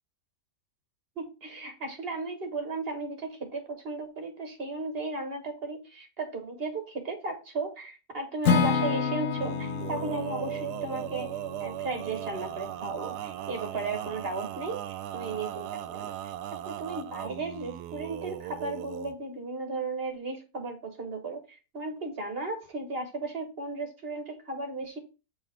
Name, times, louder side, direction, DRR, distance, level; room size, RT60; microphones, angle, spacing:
voice 1, 1.2-11.3 11.6-16.2 16.5-25.0, right 3 dB, 40° right, 5 dB, 1.6 m, -35 dB
Acoustic guitar / Strum, 8.4-12.5, left 6 dB, 60° left, 1.2 m, -29 dB
Male singing, 9.3-19.1, right 12 dB, 85° right, 1.1 m, -37 dB
8.5 x 4.4 x 3.5 m, 0.31 s
omnidirectional pair, 1.7 m